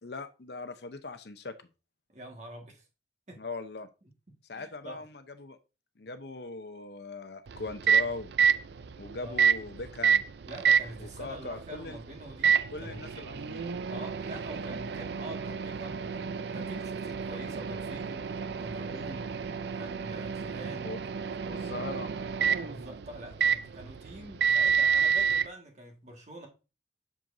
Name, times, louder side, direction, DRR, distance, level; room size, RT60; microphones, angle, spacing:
voice 1, 0.0-1.6 3.4-3.9 4.5-5.6 6.0-8.3 9.0-10.2 11.0-12.0 12.7-13.8 20.8-21.0 21.4-22.1, left 3 dB, 60° left, 0.7 m, -40 dB
voice 2, 2.1-2.8 3.3-3.4 4.5-5.0 9.2-9.5 10.5-13.2 13.9-21.0 22.6-26.5, right 1 dB, 40° right, 1.6 m, -45 dB
Microwave oven, 7.5-25.5, right 7 dB, 65° right, 0.4 m, -29 dB
7.6 x 6.9 x 2.6 m
head